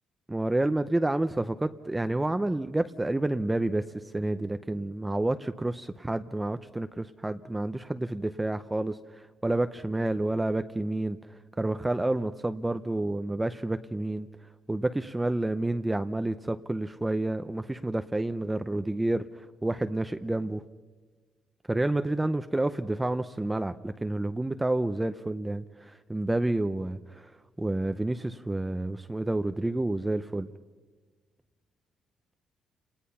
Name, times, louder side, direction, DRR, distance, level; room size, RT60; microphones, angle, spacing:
voice 1, 0.3-11.2 11.6-14.3 14.7-20.6 21.7-27.3 27.6-30.5, right 2 dB, 15° right, 10 dB, 0.6 m, -29 dB
29.5 x 19.0 x 5.6 m, 1.4 s
cardioid pair, 90°, 0 cm